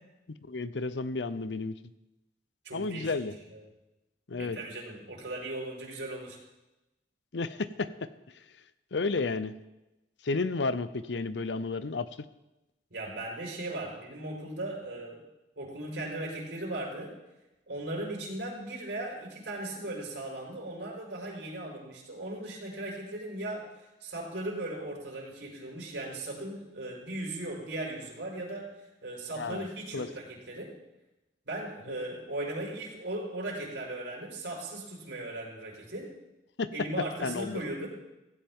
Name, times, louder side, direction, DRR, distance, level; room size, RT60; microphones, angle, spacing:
voice 1, 0.3-1.7 2.7-3.3 4.3-4.6 7.3-7.9 8.9-9.5 10.2-12.1 29.4-29.7 29.9-30.1 36.6-36.7 37.2-37.6, left 3 dB, 80° left, 14 dB, 0.7 m, -32 dB
voice 2, 2.6-3.1 3.5-3.6 4.3-6.4 12.9-15.2 15.6-17.1 17.7-23.7 24.0-28.7 29.0-30.7 31.5-36.1 36.7-37.9, right 1 dB, 85° right, -2 dB, 4.9 m, -37 dB
16.5 x 16.0 x 3.7 m, 0.98 s
head